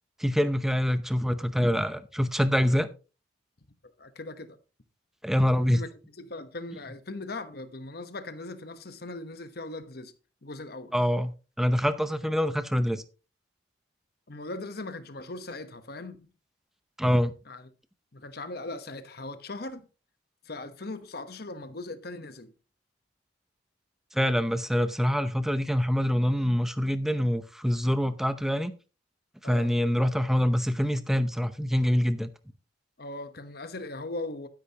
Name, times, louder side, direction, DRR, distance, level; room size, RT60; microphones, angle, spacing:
voice 1, 0.2-2.9 5.2-5.8 10.9-13.0 17.0-17.3 24.1-28.7 29.4-32.3, equal, ahead, 0.7 m, -25 dB
voice 2, 4.0-4.6 5.7-10.1 10.4-10.9 14.3-16.3 17.5-17.7 18.1-19.8 20.4-22.5 29.4-29.7 33.0-34.5, left 2 dB, 55° left, 1.1 m, -39 dB
12.0 x 10.0 x 2.9 m
head